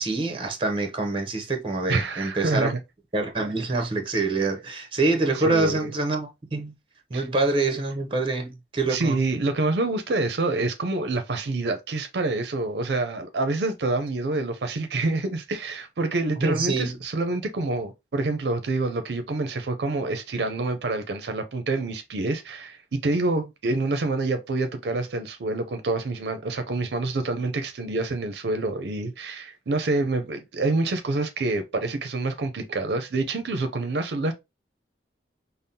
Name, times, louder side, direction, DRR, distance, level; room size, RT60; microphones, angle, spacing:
voice 1, 0.0-2.7 3.1-6.7 7.1-9.2 16.4-16.9, right 3 dB, 30° right, 0.7 m, -25 dB
voice 2, 1.9-2.8 5.3-5.9 7.1-7.3 8.9-34.3, right 2 dB, 70° right, 0.5 m, -27 dB
5.3 x 2.0 x 2.7 m
head